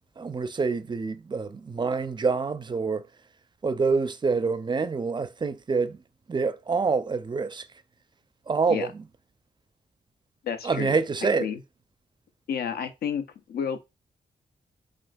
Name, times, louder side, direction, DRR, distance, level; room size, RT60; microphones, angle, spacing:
voice 1, 0.2-3.0 3.6-6.0 6.3-7.7 8.5-9.0 10.6-11.5, right 4 dB, 30° right, 0.4 m, -26 dB
voice 2, 10.4-11.0 11.4-11.6 12.5-13.2 13.5-13.8, left 7 dB, 70° left, 0.5 m, -30 dB
3.5 x 2.5 x 2.5 m
supercardioid pair, 45°, 17 cm